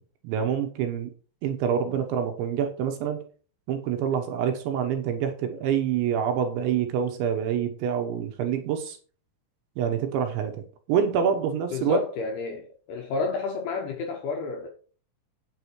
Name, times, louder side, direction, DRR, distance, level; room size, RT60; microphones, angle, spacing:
voice 1, 0.2-1.1 1.4-3.2 3.7-9.0 9.8-10.6 10.9-12.0, right 8 dB, 75° right, 3.0 m, -26 dB
voice 2, 11.7-14.7, left 4 dB, 75° left, 2.5 m, -30 dB
9.2 x 6.8 x 4.6 m
omnidirectional pair, 5.9 m